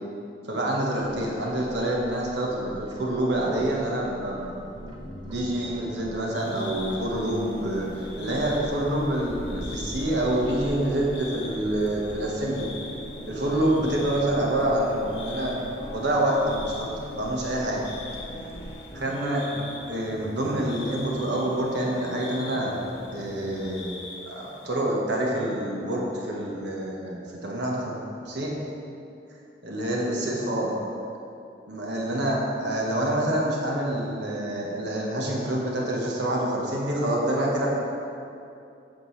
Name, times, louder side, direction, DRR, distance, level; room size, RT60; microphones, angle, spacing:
voice 1, 0.4-7.8 8.2-12.7 13.3-15.5 15.9-16.9 17.1-17.8 18.9-19.4 19.9-22.7 23.1-23.9 24.3-28.0 28.2-28.5 29.6-30.7 31.7-37.7, right 1 dB, 80° right, -3 dB, 1.4 m, -27 dB
Bird, 1.0-18.7, equal, 25° right, 0.6 m, -43 dB
sound 1, 4.7-23.9, equal, 30° left, 0.6 m, -42 dB
sound 2, 6.3-24.7, left 3 dB, 85° left, 1.2 m, -44 dB
8.6 x 6.9 x 3.3 m, 2.6 s
head